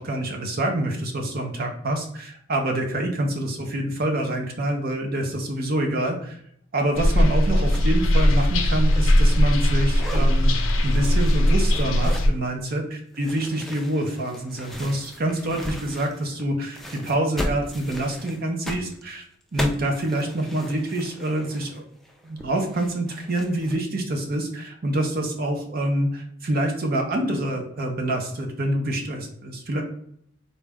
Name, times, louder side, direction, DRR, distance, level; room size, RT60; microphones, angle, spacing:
voice 1, 0.0-6.4 6.7-19.2 19.5-21.8 22.2-29.8, right 1 dB, 50° right, 2 dB, 0.6 m, -26 dB
sound 1, 7.0-12.3, equal, 85° left, 0.6 m, -19 dB
sound 2, 7.7-7.9 8.2-9.6 9.9-10.3 10.7-12.4 13.1-16.4 16.7-23.8, left 1 dB, ahead, 0.4 m, -37 dB
4.0 x 2.3 x 3.4 m, 0.67 s
head